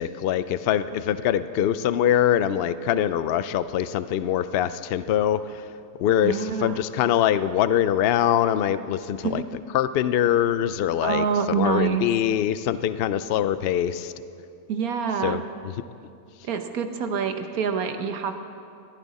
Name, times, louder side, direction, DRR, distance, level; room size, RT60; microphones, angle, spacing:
voice 1, 0.0-5.6 6.0-9.4 9.7-11.2 11.6-14.1 15.2-15.4, left 10 dB, 65° left, 13 dB, 0.6 m, -23 dB
voice 2, 6.2-6.8 9.2-9.4 11.0-12.1 14.7-15.5 16.4-18.4, right 7 dB, 80° right, 7 dB, 1.4 m, -26 dB
21.0 x 14.5 x 4.2 m, 2.5 s
omnidirectional pair, 1.5 m